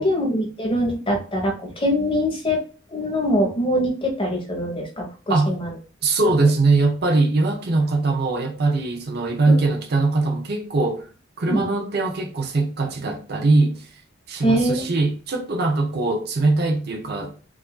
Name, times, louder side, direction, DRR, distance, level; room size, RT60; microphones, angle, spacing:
voice 1, 0.0-2.6 2.9-5.1 5.5-5.8 9.5-9.6 11.5-11.6 14.4-14.9, equal, 25° left, 1.1 m, -23 dB
voice 2, 6.0-11.1 11.4-13.9 14.3-17.3, right 3 dB, 55° right, 0.7 m, -21 dB
4.7 x 2.6 x 2.2 m
head